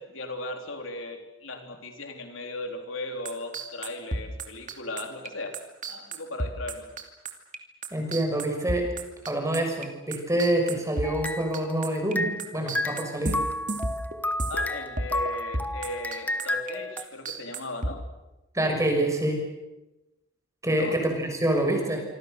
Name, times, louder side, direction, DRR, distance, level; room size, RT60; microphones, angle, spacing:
voice 1, 0.0-5.6 5.9-6.9 14.5-18.0 20.7-21.0, left 2 dB, 75° left, 4 dB, 3.8 m, -37 dB
sound 1, 3.2-12.1 12.4-14.7 15.0-15.3 15.5-16.7 17.0-18.0, right 2 dB, 40° right, 2.7 m, -32 dB
voice 2, 7.9-8.9 9.3-13.4 18.5-19.4 20.6-22.0, right 1 dB, 15° right, 3 dB, 6.4 m, -26 dB
sound 2, 11.0-12.5 12.7-17.0, left 1 dB, 10° left, 1.1 m, -31 dB
26.5 x 25.5 x 6.7 m, 1.0 s
head